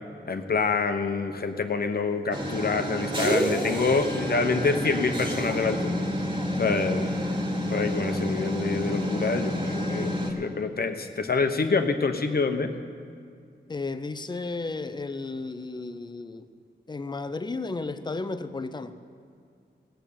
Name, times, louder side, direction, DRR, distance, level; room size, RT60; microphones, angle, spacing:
voice 1, 0.3-5.9 6.6-7.1 7.7-12.7, left 4 dB, 55° left, 6 dB, 1.0 m, -26 dB
sound 1, 2.3-10.3, equal, 25° right, 2.0 m, -29 dB
voice 2, 13.7-16.5 16.9-19.0, left 3 dB, 25° left, 11 dB, 0.6 m, -33 dB
16.5 x 9.0 x 7.0 m, 2.3 s
wide cardioid pair, 125°, 19 cm